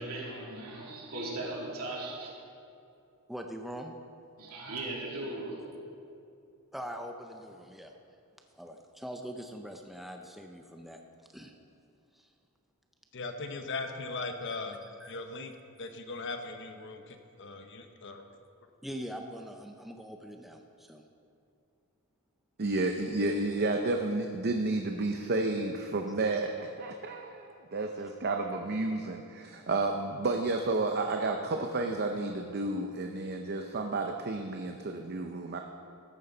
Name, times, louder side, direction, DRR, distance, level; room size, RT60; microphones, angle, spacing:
voice 1, 0.0-2.3 4.4-5.8, right 2 dB, 75° right, -3 dB, 2.8 m, -38 dB
voice 2, 3.3-3.9 6.7-7.9 8.5-11.0 11.3-11.5 12.1-12.3 14.4-15.2 18.8-21.1, equal, ahead, 3 dB, 0.5 m, -43 dB
voice 3, 13.1-14.8 15.1-18.2, left 3 dB, 55° left, 6 dB, 1.0 m, -39 dB
voice 4, 22.6-35.6, right 2 dB, 45° right, 4 dB, 0.6 m, -31 dB
14.0 x 11.0 x 4.0 m, 2.6 s
head